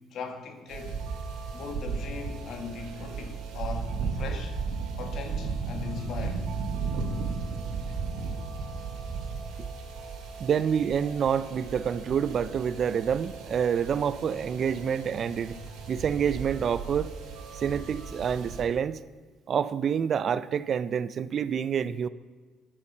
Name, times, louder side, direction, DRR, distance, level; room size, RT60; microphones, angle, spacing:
voice 1, 0.1-1.0 1.5-4.6 5.0-6.4, left 4 dB, 60° left, 6 dB, 1.4 m, -39 dB
sound 1, 0.7-18.6, right 4 dB, 80° right, 2.0 m, -35 dB
voice 2, 10.4-15.5 15.9-17.1 17.5-19.0 19.5-22.1, right 7 dB, 50° right, 16 dB, 0.4 m, -27 dB
9.9 x 6.7 x 5.4 m, 1.3 s
cardioid pair, 95°, 0 cm